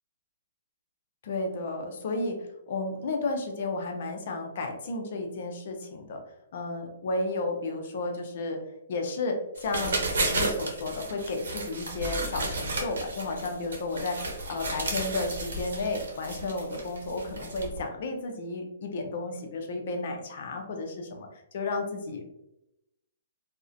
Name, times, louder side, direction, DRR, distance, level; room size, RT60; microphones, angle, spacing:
voice 1, 1.2-2.4 2.7-6.2 6.5-8.6 8.9-14.2 14.5-21.3 21.5-22.3, left 2 dB, 55° left, 4 dB, 0.5 m, -32 dB
sound 1, 9.6-17.8, right 2 dB, 80° right, 0.8 m, -33 dB
2.3 x 2.1 x 2.5 m, 0.87 s
hypercardioid pair, 150°, 0 cm